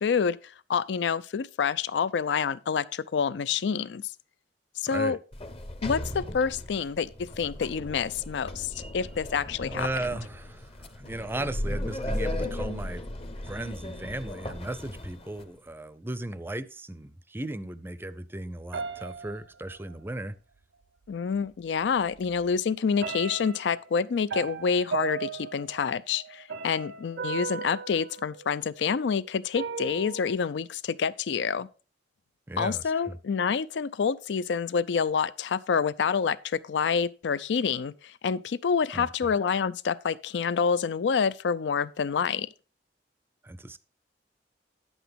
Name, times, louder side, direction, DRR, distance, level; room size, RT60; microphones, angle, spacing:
voice 1, 0.0-4.0 4.8-5.2 5.8-9.9 21.1-31.7 32.6-42.5, left 6 dB, 75° left, 0.4 m, -27 dB
voice 2, 4.9-5.2 9.6-13.0 13.5-20.3 32.5-33.2 38.9-39.3 43.4-43.8, right 1 dB, 10° right, 0.5 m, -36 dB
Sliding door, 5.3-15.5, left 1 dB, 35° left, 0.8 m, -36 dB
sound 1, 18.7-20.2 21.4-21.5 21.9-22.5 23.0-28.9 29.5-30.4, right 6 dB, 80° right, 0.7 m, -37 dB
10.0 x 8.0 x 3.5 m
head